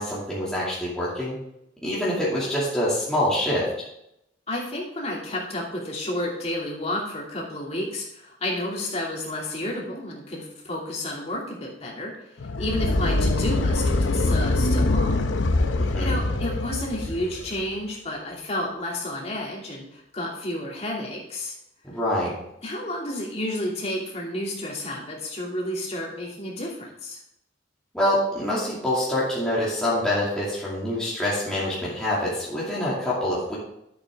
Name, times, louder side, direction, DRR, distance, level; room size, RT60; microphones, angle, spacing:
voice 1, 0.0-1.3 1.8-3.7 15.9-16.2 21.8-22.3 27.9-33.6, left 1 dB, 5° left, -8 dB, 2.5 m, -25 dB
voice 2, 4.5-12.1 12.6-15.2 16.0-21.5 22.6-27.2, left 1 dB, 35° left, -3 dB, 2.7 m, -31 dB
sound 1, 12.4-17.6, left 2 dB, 80° left, 0.8 m, -23 dB
10.5 x 8.2 x 3.6 m, 0.80 s
head